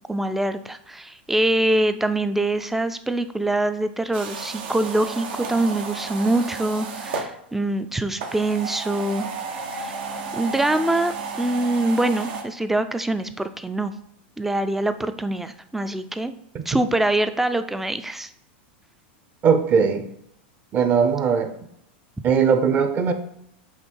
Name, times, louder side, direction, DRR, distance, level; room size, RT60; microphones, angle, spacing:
voice 1, 0.1-9.3 9.8-10.0 10.3-11.1 11.4-13.9 14.4-16.3 16.7-18.3, right 1 dB, 5° right, 10 dB, 0.4 m, -24 dB
sound 1, 4.1-7.3 8.1-12.4, right 5 dB, 75° right, 1.2 m, -32 dB
voice 2, 19.4-20.1 20.7-21.5 22.2-23.1, right 6 dB, 30° right, 8 dB, 0.8 m, -19 dB
8.1 x 3.2 x 4.6 m, 0.75 s
supercardioid pair, 130°, 6 cm